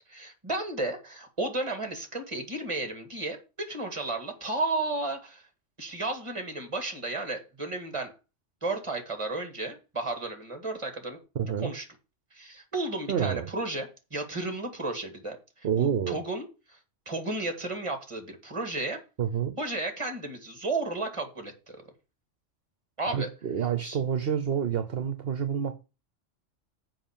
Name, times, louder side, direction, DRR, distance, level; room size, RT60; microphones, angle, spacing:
voice 1, 0.1-5.4 5.8-8.1 8.6-11.2 11.6-11.9 12.3-16.8 17.1-19.0 19.6-21.8 23.0-23.3 23.8-24.0, right 2 dB, 25° right, 2.1 m, -33 dB
voice 2, 11.3-11.7 13.1-13.5 15.6-16.2 19.2-19.5 23.1-25.7, right 8 dB, 55° right, 1.0 m, -28 dB
7.7 x 5.1 x 7.3 m
omnidirectional pair, 1.2 m